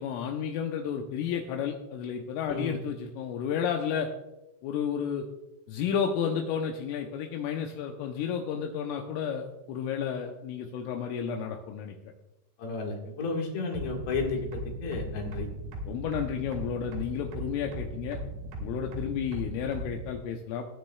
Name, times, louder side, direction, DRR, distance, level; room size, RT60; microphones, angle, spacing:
voice 1, 0.0-4.1 4.6-5.2 5.7-12.1 15.9-18.2 18.6-20.6, left 7 dB, 80° left, 2 dB, 3.3 m, -32 dB
voice 2, 12.6-15.5, left 4 dB, 65° left, 0 dB, 3.6 m, -32 dB
sound 1, 13.7-20.1, right 1 dB, 75° right, 4.6 m, -37 dB
20.5 x 9.6 x 2.3 m, 0.94 s
omnidirectional pair, 5.9 m